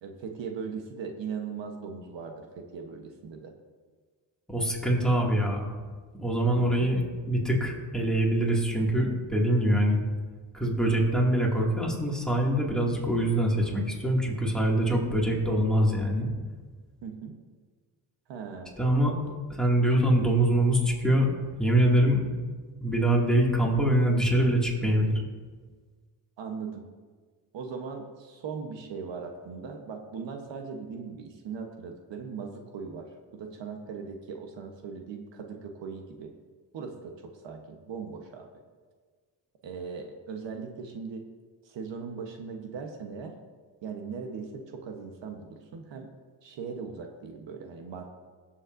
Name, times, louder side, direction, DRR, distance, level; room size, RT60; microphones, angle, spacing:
voice 1, 0.0-3.5 6.5-6.9 17.0-17.3 18.3-18.7 26.4-26.8 27.5-36.3 36.7-38.5 39.6-41.2 41.6-43.3 43.8-46.1 46.4-48.1, right 5 dB, 75° right, 4 dB, 1.2 m, -39 dB
voice 2, 4.5-5.7 6.1-7.0 7.3-10.0 10.5-16.3 18.8-19.1 19.6-21.3 21.6-22.2 22.8-25.1, right 1 dB, ahead, -3 dB, 2.3 m, -24 dB
18.5 x 7.2 x 2.6 m, 1.5 s
cardioid pair, 85°, 44 cm